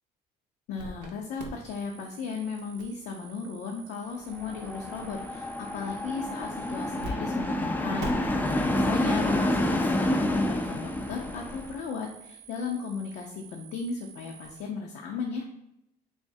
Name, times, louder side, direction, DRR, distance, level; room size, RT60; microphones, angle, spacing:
voice 1, 0.7-15.5, left 5 dB, 75° left, 0 dB, 0.5 m, -36 dB
sound 1, 0.8-1.1 1.4-7.1 7.4-7.5 8.0-14.6, right 3 dB, 90° right, 0.6 m, -46 dB
sound 2, 4.3-11.8, left 1 dB, 10° left, 0.3 m, -28 dB
3.4 x 3.1 x 2.6 m, 0.83 s
cardioid pair, 110°, 17 cm